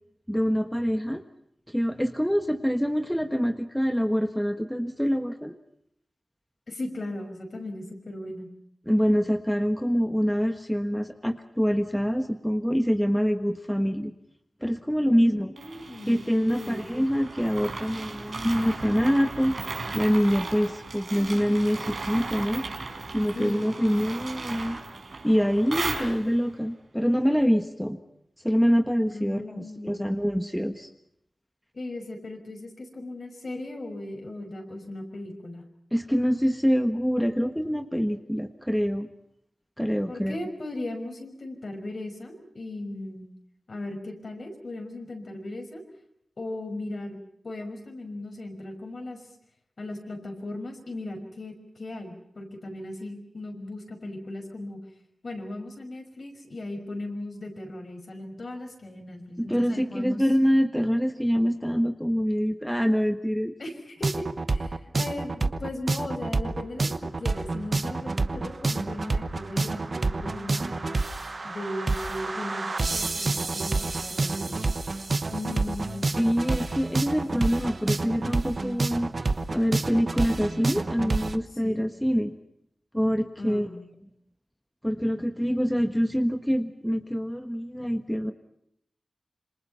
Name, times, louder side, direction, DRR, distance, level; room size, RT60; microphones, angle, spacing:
voice 1, 0.3-1.2 1.7-5.5 8.9-14.1 14.6-15.5 16.1-19.6 19.9-22.7 23.1-24.8 25.2-28.0 28.4-30.9 35.9-39.1 39.8-40.4 59.4-63.5 76.2-79.1 79.5-82.3 82.9-83.7 84.8-88.3, equal, ahead, 7 dB, 1.3 m, -25 dB
voice 2, 6.7-8.5 15.1-16.9 23.3-23.7 29.1-30.2 31.7-35.7 40.1-43.3 43.7-45.8 46.4-47.2 47.4-49.3 49.8-54.8 55.2-60.2 63.6-71.0 71.4-74.7 75.3-76.1 81.6-81.8 83.4-83.9, left 1 dB, 55° left, 4 dB, 5.6 m, -37 dB
sound 1, 15.6-26.5, right 3 dB, 65° right, 4.8 m, -36 dB
sound 2, 64.0-81.4, right 3 dB, 45° right, 1.1 m, -28 dB
27.0 x 26.5 x 5.6 m, 0.74 s
wide cardioid pair, 110°, 0 cm